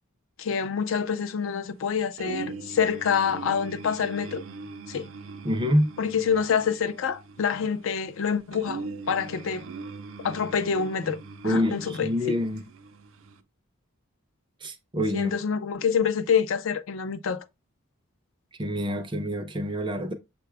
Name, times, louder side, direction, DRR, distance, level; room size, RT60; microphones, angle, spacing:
voice 1, 0.4-4.4 4.9-5.1 6.0-8.8 9.1-9.6 10.2-12.4 15.1-17.4, left 6 dB, 65° left, 0.4 m, -27 dB
sound 1, 2.2-13.4, right 4 dB, 70° right, 0.5 m, -41 dB
voice 2, 5.4-5.9 11.4-12.6 14.6-15.3 18.6-20.1, equal, 25° right, 0.5 m, -26 dB
6.6 x 2.3 x 3.3 m
head